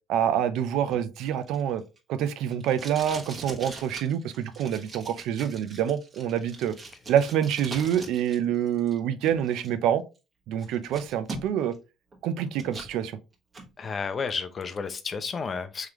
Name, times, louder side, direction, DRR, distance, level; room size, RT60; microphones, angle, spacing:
voice 1, 0.1-1.8 2.1-6.8 7.1-10.0 10.5-11.7 12.2-13.2, right 9 dB, 75° right, 0.4 m, -26 dB
Packing tape duct tape, 0.9-8.4 8.7-9.7 10.2-10.3 10.6-11.8 12.1-12.9 13.3-13.7, right 2 dB, 35° right, 1.3 m, -42 dB
voice 2, 13.8-15.9, left 5 dB, 35° left, 0.5 m, -32 dB
3.7 x 3.2 x 2.9 m
cardioid pair, 115°, 0 cm